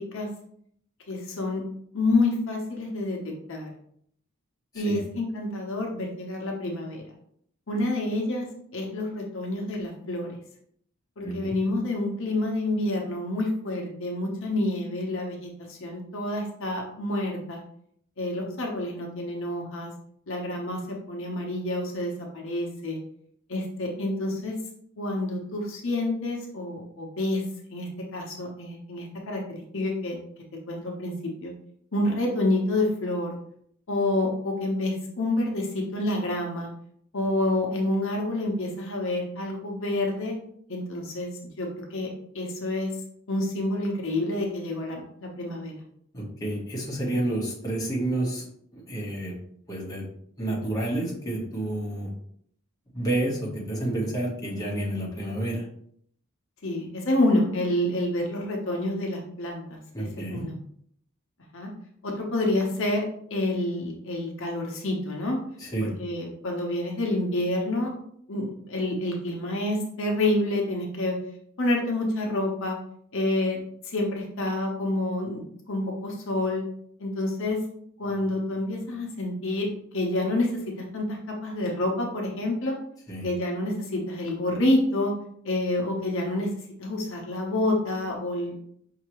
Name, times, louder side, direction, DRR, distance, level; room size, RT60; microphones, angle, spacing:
voice 1, 1.1-1.6 1.9-3.7 4.7-7.0 7.7-8.4 8.7-10.3 11.2-17.6 18.2-19.9 20.3-23.0 23.5-24.5 25.0-27.4 27.7-30.2 30.7-31.5 31.9-33.4 33.9-36.7 37.1-40.3 40.7-41.3 41.6-42.1 42.3-42.9 43.3-45.7 56.6-60.5 61.5-61.7 62.0-65.4 65.8-67.9 68.3-71.1 71.6-72.8 73.1-73.6 73.8-76.6 77.0-77.6 78.0-82.8 83.2-85.1 85.4-86.5 86.8-88.6, left 1 dB, 65° left, 0 dB, 0.9 m, -28 dB
voice 2, 11.2-11.5 46.1-48.5 48.7-49.3 49.7-50.0 50.4-52.1 52.9-55.6 59.9-60.5 65.6-65.9 83.1-83.3, right 1 dB, 15° left, -4 dB, 1.1 m, -29 dB
5.5 x 2.8 x 3.0 m, 0.67 s
head